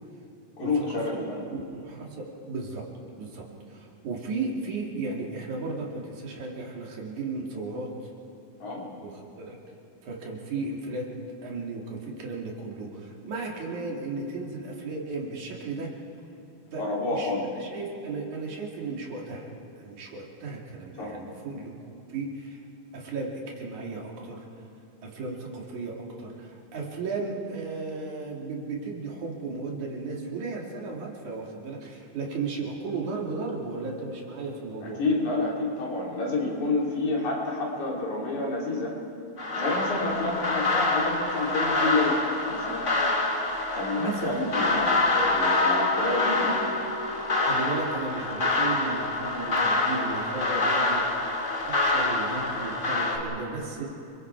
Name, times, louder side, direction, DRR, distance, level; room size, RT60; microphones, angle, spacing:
voice 1, 0.6-1.4 8.6-8.9 16.8-17.4 21.0-21.1 34.8-39.0 39.5-42.2 42.5-42.9 43.7-46.6, left 3 dB, 80° left, -3 dB, 4.8 m, -29 dB
voice 2, 1.7-2.9 3.2-7.9 9.0-9.6 10.0-11.1 11.4-15.9 16.7-16.8 17.1-17.3 17.6-19.5 19.8-21.8 22.1-22.6 22.9-24.5 25.0-35.0 44.0-44.5 47.5-51.1 51.6-53.9, right 3 dB, 80° right, -2 dB, 4.1 m, -35 dB
sound 1, 39.4-53.2, left 2 dB, 30° left, 2.0 m, -26 dB
29.0 x 21.5 x 4.7 m, 2.6 s
omnidirectional pair, 3.4 m